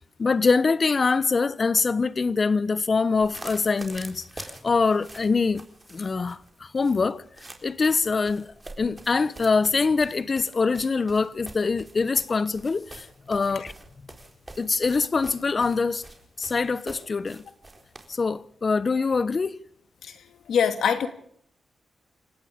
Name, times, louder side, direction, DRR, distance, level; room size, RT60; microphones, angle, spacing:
voice 1, 0.2-5.6 5.9-7.2 7.6-8.5 8.8-13.7 14.6-16.0 16.4-17.4 18.1-19.6, left 4 dB, 40° left, 1.0 m, -24 dB
sound 1, 3.1-18.1, right 2 dB, 25° right, 4.0 m, -46 dB
voice 2, 20.5-21.1, left 7 dB, 85° left, 2.3 m, -23 dB
29.0 x 17.0 x 5.2 m
cardioid pair, 85°, 0 cm